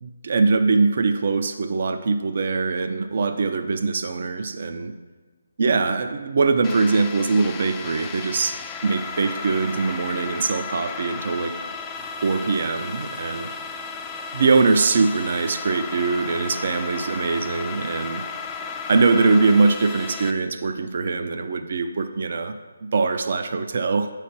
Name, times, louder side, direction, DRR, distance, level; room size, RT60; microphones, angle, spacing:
voice 1, 0.0-4.9 5.6-8.6 8.8-11.5 12.2-13.5 14.3-18.2 18.9-22.5 22.8-24.1, right 4 dB, 55° right, 8 dB, 0.5 m, -22 dB
sound 1, 6.6-20.3, left 4 dB, 15° left, 0.3 m, -34 dB
8.4 x 3.3 x 4.3 m, 1.4 s
figure-of-eight pair, 155°, 0 cm